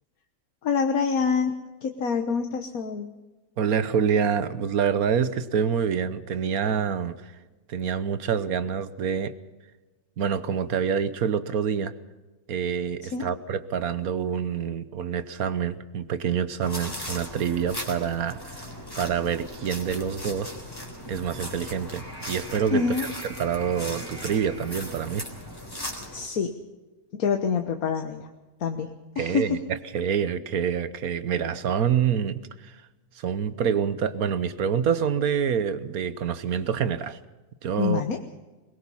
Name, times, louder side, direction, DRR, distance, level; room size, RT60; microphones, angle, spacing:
voice 1, 0.6-1.5 1.8-3.1 13.0-13.3 22.7-23.1 26.1-26.5 27.1-28.3 28.6-28.9 29.2-29.5 37.8-38.2, left 5 dB, 80° left, 5 dB, 1.6 m, -26 dB
voice 2, 3.6-7.2 7.7-9.3 10.2-11.9 12.5-18.6 19.0-20.6 21.1-25.2 29.2-32.7 33.2-37.2 37.6-38.0, right 7 dB, 80° right, 13 dB, 1.5 m, -27 dB
sound 1, 16.6-26.3, left 1 dB, 15° left, 3.6 m, -38 dB
22.5 x 21.0 x 5.6 m, 1.2 s
omnidirectional pair, 1.5 m